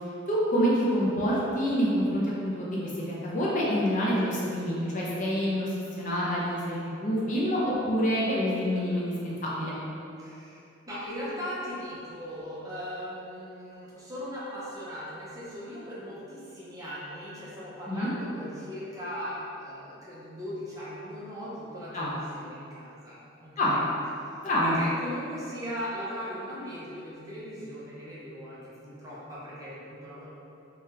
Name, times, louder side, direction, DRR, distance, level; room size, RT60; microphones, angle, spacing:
voice 1, 0.3-9.8 17.9-18.1 21.9-22.1 23.6-23.7 24.4-24.8, equal, 40° left, -6 dB, 0.5 m, -27 dB
voice 2, 10.2-23.9 24.2-24.3 24.6-30.3, equal, 15° right, -9 dB, 0.6 m, -39 dB
3.2 x 2.3 x 2.8 m, 2.8 s
head